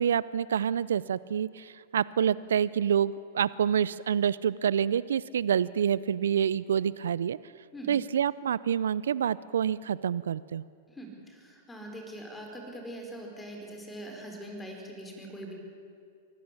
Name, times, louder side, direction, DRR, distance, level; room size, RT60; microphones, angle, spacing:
voice 1, 0.0-7.4 7.9-10.6, right 8 dB, 75° right, 19 dB, 0.4 m, -27 dB
voice 2, 7.7-8.0 10.9-15.5, right 1 dB, 10° left, 2 dB, 4.9 m, -42 dB
24.0 x 15.0 x 8.5 m, 2.4 s
hypercardioid pair, 105°, 0 cm